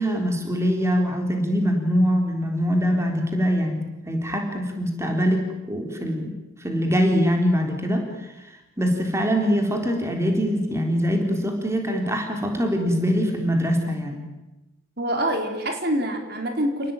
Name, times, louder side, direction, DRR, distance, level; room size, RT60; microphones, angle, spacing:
voice 1, 0.0-6.3 6.6-8.3 8.8-14.3, equal, 15° right, 3 dB, 3.8 m, -23 dB
voice 2, 15.0-16.9, right 1 dB, 50° right, 4 dB, 4.1 m, -25 dB
29.5 x 19.5 x 9.3 m, 1.0 s
head